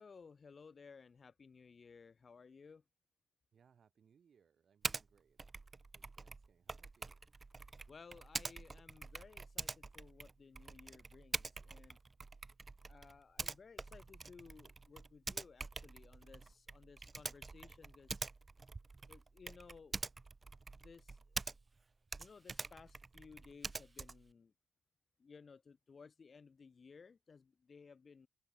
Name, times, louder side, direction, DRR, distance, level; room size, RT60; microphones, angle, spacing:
voice 1, 0.0-2.8 7.9-12.0 12.9-18.2 19.1-20.0 20.8-21.4 22.2-24.5 25.2-28.3, left 5 dB, 40° left, 0.9 m, -58 dB
voice 2, 3.5-5.4 5.9-7.2, right 7 dB, 55° right, 7.7 m, -71 dB
Typing, 4.8-5.1 5.4-21.8 22.1-24.3, right 3 dB, 30° right, 0.4 m, -46 dB
open air
supercardioid pair, 65°, 0 cm